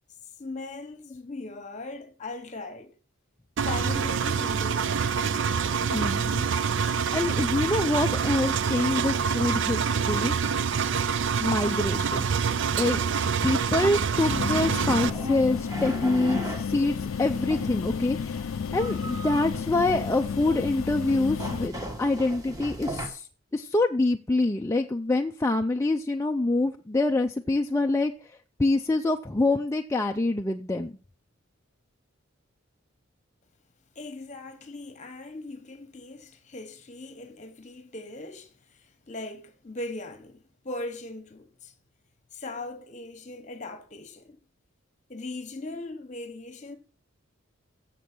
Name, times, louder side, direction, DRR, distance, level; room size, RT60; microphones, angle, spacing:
voice 1, 0.4-2.9 3.6-5.1 33.9-41.7 42.3-44.4 45.1-46.8, left 2 dB, 35° left, 1.2 m, -39 dB
Engine, 3.6-15.1, right 6 dB, 60° right, 0.4 m, -26 dB
voice 2, 5.9-6.4 7.1-10.3 11.4-12.3 12.7-23.3 23.5-28.1 28.6-30.9, left 2 dB, 15° left, 0.4 m, -26 dB
sound 1, 14.3-21.7, left 6 dB, 80° left, 0.4 m, -32 dB
sound 2, 14.3-23.1, right 1 dB, 15° right, 1.3 m, -39 dB
7.5 x 6.9 x 6.0 m
head